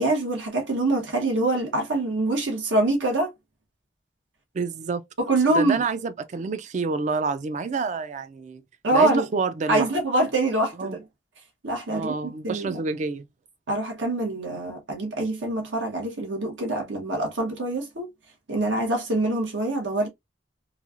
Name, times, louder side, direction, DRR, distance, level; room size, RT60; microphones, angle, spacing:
voice 1, 0.0-3.3 5.2-5.8 8.8-9.2 9.7-11.0 11.6-12.1 12.4-12.8 13.7-18.1 18.5-20.1, right 2 dB, 90° right, 1.1 m, -24 dB
voice 2, 4.5-5.0 5.5-8.6 8.9-9.9 10.8-11.0 11.9-13.2, right 4 dB, 40° right, 0.3 m, -28 dB
3.1 x 2.3 x 2.4 m
head